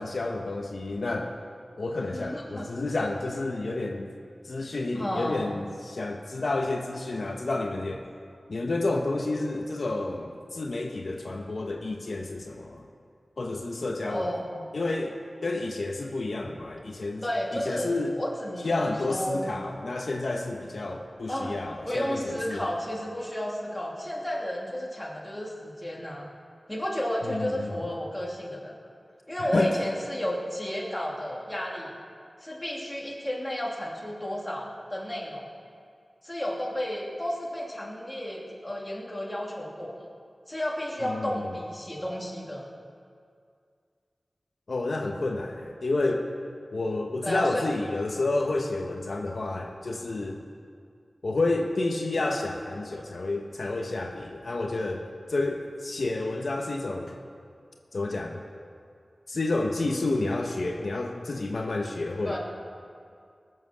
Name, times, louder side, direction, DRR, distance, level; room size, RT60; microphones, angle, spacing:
voice 1, 0.0-1.3 1.8-4.1 4.4-8.0 8.5-12.9 13.4-14.3 14.7-17.2 17.5-18.1 18.6-22.6 27.2-27.7 29.4-29.8 41.0-41.5 44.7-46.3 46.7-50.4 51.2-55.0 55.3-57.1 57.9-58.4 59.3-62.4, left 2 dB, 70° left, 1 dB, 1.1 m, -30 dB
voice 2, 2.0-2.7 4.9-5.4 14.1-14.7 17.2-17.9 18.2-19.5 21.3-21.6 21.8-26.3 26.7-28.7 29.3-31.9 32.4-35.5 36.2-40.1 40.5-42.6 47.2-47.7 62.2-62.4, equal, 15° left, -3 dB, 2.7 m, -32 dB
20.5 x 7.8 x 6.4 m, 2.3 s
wide cardioid pair, 75°, 0 cm